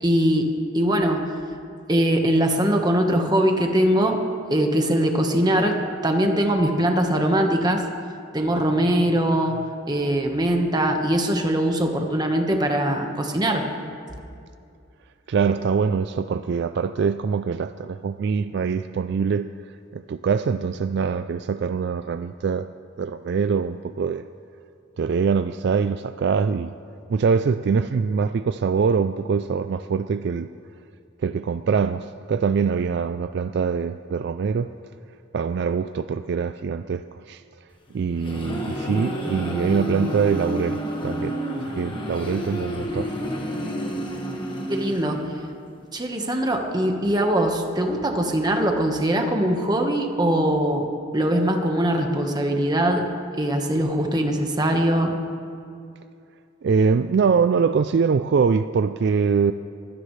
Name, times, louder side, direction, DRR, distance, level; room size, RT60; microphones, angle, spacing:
voice 1, 0.0-0.5 0.7-1.3 1.9-4.2 4.5-5.8 6.0-7.8 8.3-9.6 9.9-13.6 44.7-45.2 45.9-50.9 51.1-53.1 53.4-55.2, right 1 dB, 20° right, 3 dB, 1.3 m, -21 dB
voice 2, 15.3-19.5 19.9-22.7 23.0-24.3 25.0-26.7 27.1-30.5 31.2-34.7 35.3-37.4 37.9-43.2 56.6-59.5, right 5 dB, 55° right, 12 dB, 0.3 m, -23 dB
sound 1, 37.9-45.6, equal, 25° left, 1.6 m, -30 dB
23.0 x 16.5 x 3.3 m, 2.4 s
head